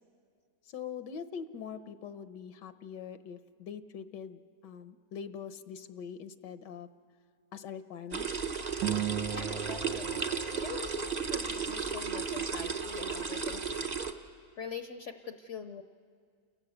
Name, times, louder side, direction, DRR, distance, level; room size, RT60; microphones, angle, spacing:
voice 1, 0.6-6.9 7.5-8.3, left 7 dB, 85° left, 11 dB, 1.5 m, -43 dB
sound 1, 8.1-14.1, right 5 dB, 35° right, 0.7 m, -34 dB
sound 2, 8.8-11.4, right 10 dB, 85° right, 1.5 m, -37 dB
voice 2, 9.2-14.0 14.6-15.8, left 6 dB, 60° left, 8 dB, 0.8 m, -44 dB
28.5 x 17.0 x 7.7 m, 2.1 s
omnidirectional pair, 1.9 m